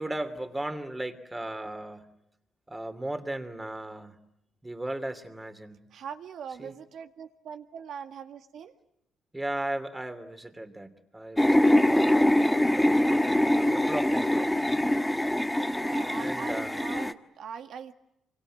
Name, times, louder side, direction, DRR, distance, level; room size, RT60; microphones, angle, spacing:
voice 1, 0.0-2.1 2.7-4.2 4.6-5.8 6.6-6.7 9.3-14.8 16.1-16.9, right 1 dB, 15° right, 9 dB, 2.9 m, -37 dB
voice 2, 5.9-8.7 15.7-17.9, right 7 dB, 70° right, 7 dB, 1.9 m, -41 dB
sound 1, 11.4-17.1, left 1 dB, 5° left, 1.3 m, -24 dB
26.0 x 25.0 x 9.1 m, 0.81 s
cardioid pair, 90°, 0 cm